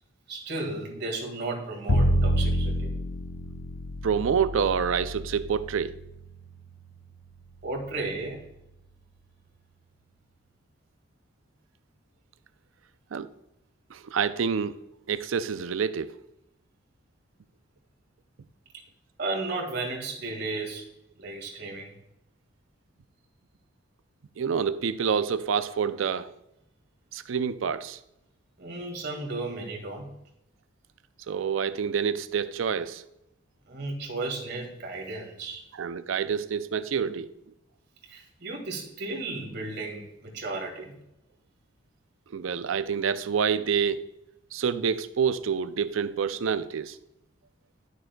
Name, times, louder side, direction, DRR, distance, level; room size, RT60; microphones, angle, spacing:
voice 1, 0.3-2.9 7.6-8.4 19.2-20.8 21.2-21.9 28.6-30.1 33.7-35.6 38.1-40.9, right 2 dB, 60° right, 2.0 m, -34 dB
Bowed string instrument, 1.9-8.0, equal, 70° left, 0.7 m, -29 dB
voice 2, 4.0-6.0 13.1-13.3 13.9-14.7 15.1-16.1 24.4-26.3 27.1-28.0 31.3-33.0 35.8-37.3 42.3-44.0 44.5-47.0, right 6 dB, 85° right, 0.4 m, -27 dB
11.0 x 6.3 x 2.3 m
head